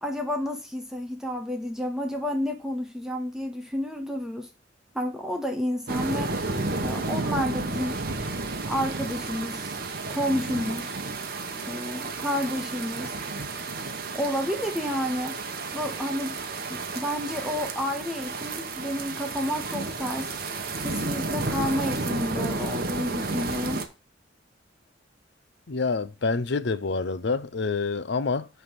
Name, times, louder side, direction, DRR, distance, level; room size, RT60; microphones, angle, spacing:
voice 1, 0.0-4.5 4.9-6.4 6.8-8.0 8.7-9.8 10.1-11.0 11.7-13.1 14.1-15.4 15.7-16.4 16.7-20.3 20.8-23.8, equal, 5° right, 0.7 m, -30 dB
sound 1, 5.9-23.9, right 3 dB, 50° right, 1.1 m, -32 dB
voice 2, 25.7-28.5, left 4 dB, 65° left, 0.6 m, -27 dB
9.0 x 3.5 x 6.1 m
head